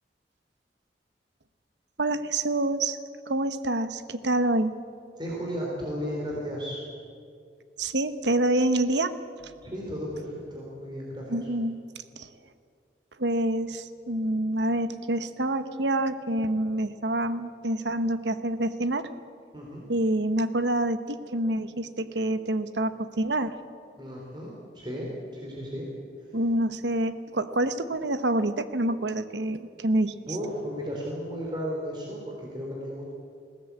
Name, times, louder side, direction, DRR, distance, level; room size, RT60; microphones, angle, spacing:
voice 1, 2.0-3.0 3.3-4.7 7.8-9.1 9.4-9.5 11.3-11.7 12.2-12.3 13.2-19.1 19.9-23.5 26.3-30.1, right 1 dB, 85° right, 11 dB, 1.1 m, -27 dB
voice 2, 5.2-6.8 9.6-11.5 19.5-19.8 24.0-25.9 26.3-26.4 30.3-33.1, equal, 25° right, -3 dB, 3.7 m, -34 dB
20.5 x 17.0 x 8.4 m, 2.3 s
head